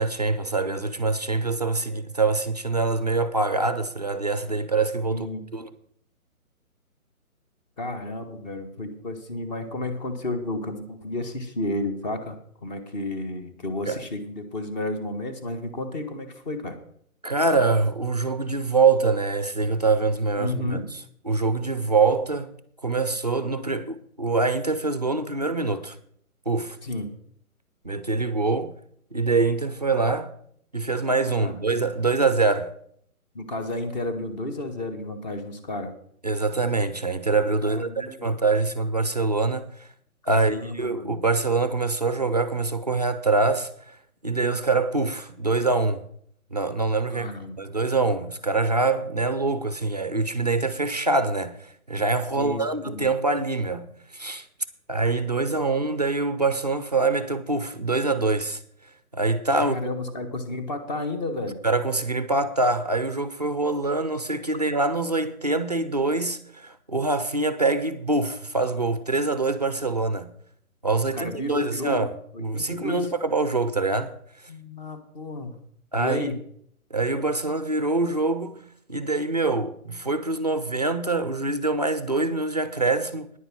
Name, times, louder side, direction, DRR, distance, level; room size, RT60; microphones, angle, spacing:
voice 1, 0.0-5.3 5.5-5.7 13.9-14.0 17.2-21.0 21.2-22.5 22.8-26.0 26.5-26.8 27.8-28.7 29.1-30.3 30.7-32.7 36.2-39.9 40.3-44.0 44.2-46.1 46.5-47.3 47.6-54.5 54.9-58.6 59.1-59.8 61.6-70.3 70.8-72.1 72.4-74.5 75.9-76.3 76.9-78.6 78.9-83.3, right 3 dB, 30° right, 0.4 m, -24 dB
voice 2, 5.1-5.4 7.8-12.3 12.6-16.8 20.4-20.9 26.8-27.1 31.4-31.9 33.3-35.9 37.6-38.3 40.3-41.2 47.1-47.6 52.4-53.1 59.6-61.6 71.1-73.1 74.5-75.6 75.9-76.4, left 2 dB, 30° left, 1.5 m, -32 dB
10.0 x 9.3 x 6.1 m
hypercardioid pair, 160°, 44 cm